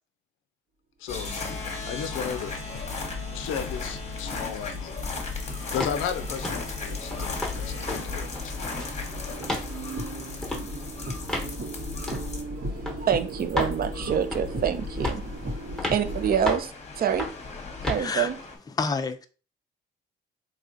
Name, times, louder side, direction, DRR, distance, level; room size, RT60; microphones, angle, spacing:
voice 1, 1.0-1.3 1.8-2.8 3.3-5.0 5.7-8.4, left 8 dB, 90° left, 0.5 m, -34 dB
sound 1, 1.1-18.6, left 4 dB, 35° left, 0.9 m, -36 dB
sound 2, 2.1-16.3, right 1 dB, 85° right, 1.7 m, -38 dB
sound 3, 5.8-6.0 6.4-6.7 7.1-7.6 7.9-8.0 8.4-9.0 9.4-9.7 10.4-10.6 11.3-11.5 12.1-12.3 12.9-13.0 13.6-13.8 14.3-14.6 15.0-15.3 15.8-16.0 16.5-16.7 17.2-17.4 17.8-18.1, left 2 dB, 5° left, 1.0 m, -31 dB
voice 2, 12.9-15.2 15.9-17.3 17.9-18.4, right 8 dB, 50° right, 0.5 m, -26 dB
voice 3, 18.0-18.3 18.8-19.3, left 4 dB, 20° left, 0.4 m, -29 dB
3.5 x 3.3 x 2.6 m
cardioid pair, 90°, 20 cm